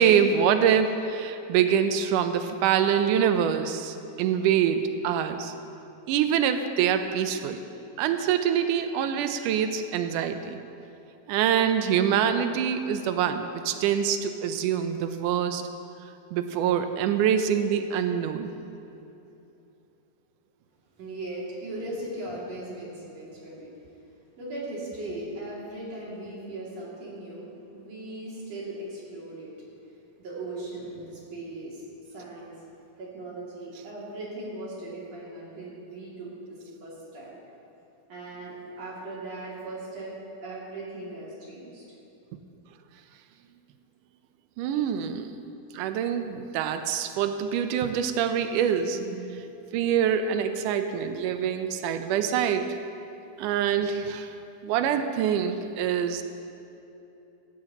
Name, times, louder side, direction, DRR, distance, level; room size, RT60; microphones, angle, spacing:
voice 1, 0.0-5.5 6.1-7.6 8.0-10.6 11.3-15.6 16.3-18.5 44.6-45.3 45.7-52.8 53.4-54.3 54.6-56.2, right 8 dB, 80° right, 8 dB, 2.1 m, -25 dB
voice 2, 21.0-23.7 24.4-29.5 30.2-32.6 33.0-37.3 38.1-40.1 40.4-41.9 44.6-44.9, right 2 dB, 50° right, -6 dB, 3.7 m, -38 dB
18.0 x 14.5 x 3.0 m, 2.8 s
omnidirectional pair, 3.9 m